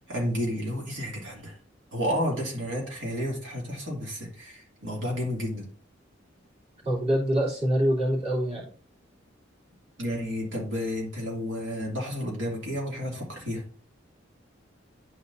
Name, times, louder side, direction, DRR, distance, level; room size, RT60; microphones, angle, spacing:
voice 1, 0.1-1.6 1.9-5.7 10.0-13.7, equal, 85° right, -2 dB, 2.7 m, -31 dB
voice 2, 6.8-8.6, equal, 35° right, -4 dB, 2.6 m, -25 dB
11.0 x 4.2 x 2.7 m, 0.43 s
head